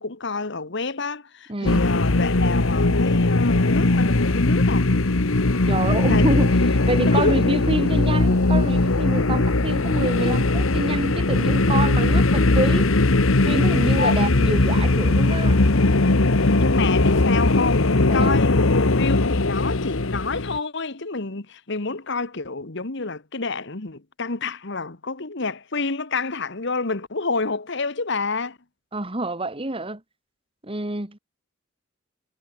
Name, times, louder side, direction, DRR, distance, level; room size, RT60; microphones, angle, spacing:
voice 1, 0.0-4.9 5.7-6.3 7.0-7.4 14.0-14.2 16.4-28.6, left 3 dB, 60° left, 1.6 m, -28 dB
voice 2, 1.5-1.8 5.7-6.5 6.9-12.9 13.4-15.6 18.1-18.4 28.9-30.0 30.6-31.2, right 2 dB, 25° right, 2.6 m, -27 dB
sound 1, 1.6-20.6, left 2 dB, 90° left, 1.3 m, -19 dB
head